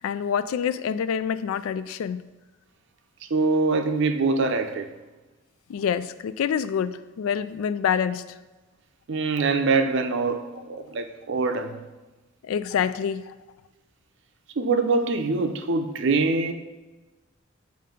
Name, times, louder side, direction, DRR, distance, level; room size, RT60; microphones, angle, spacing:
voice 1, 0.0-2.2 5.7-8.2 12.4-13.3, left 7 dB, 80° left, 14 dB, 0.3 m, -26 dB
voice 2, 3.3-4.9 9.1-11.8 14.6-16.5, right 3 dB, 60° right, 7 dB, 0.5 m, -24 dB
7.5 x 2.6 x 5.2 m, 1.2 s
head